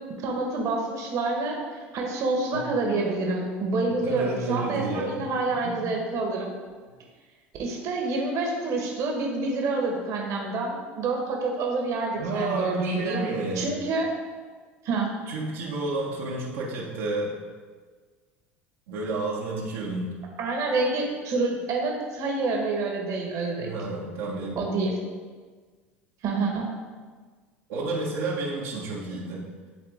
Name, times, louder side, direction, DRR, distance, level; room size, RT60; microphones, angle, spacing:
voice 1, 0.2-6.5 7.6-13.2 13.5-14.1 14.8-15.1 20.4-23.7 24.6-24.9 26.2-26.7, right 3 dB, 55° right, 0 dB, 1.6 m, -27 dB
voice 2, 4.1-5.2 5.6-6.0 12.1-13.7 15.3-17.4 18.9-20.2 23.6-24.6 27.7-29.4, right 2 dB, 70° right, -5 dB, 1.5 m, -30 dB
11.0 x 3.9 x 3.7 m, 1.5 s
hypercardioid pair, 75°, 7 cm